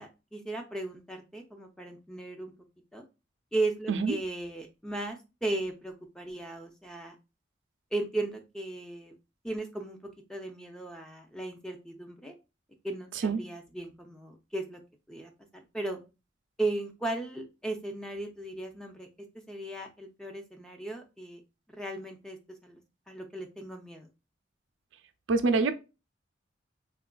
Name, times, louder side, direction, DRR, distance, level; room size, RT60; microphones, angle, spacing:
voice 1, 0.0-2.5 2.9-3.0 3.5-7.2 7.9-9.1 9.4-12.3 12.8-14.8 15.1-15.3 15.7-16.0 16.6-19.1 19.3-21.4 21.7-22.8 23.1-24.1, right 2 dB, 5° left, 3 dB, 0.4 m, -36 dB
voice 2, 25.3-25.7, right 4 dB, 80° right, 7 dB, 0.4 m, -25 dB
3.6 x 2.4 x 2.2 m, 0.28 s
head